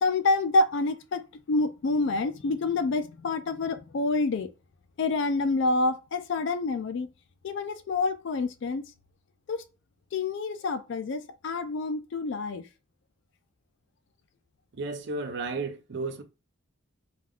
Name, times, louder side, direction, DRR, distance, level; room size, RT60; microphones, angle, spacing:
voice 1, 0.0-1.2 1.5-4.5 5.0-7.1 7.4-8.9 9.5-9.6 10.1-12.6, left 3 dB, 60° left, 0.3 m, -27 dB
voice 2, 14.7-16.2, right 3 dB, 55° right, 0.5 m, -33 dB
3.4 x 2.3 x 2.3 m
head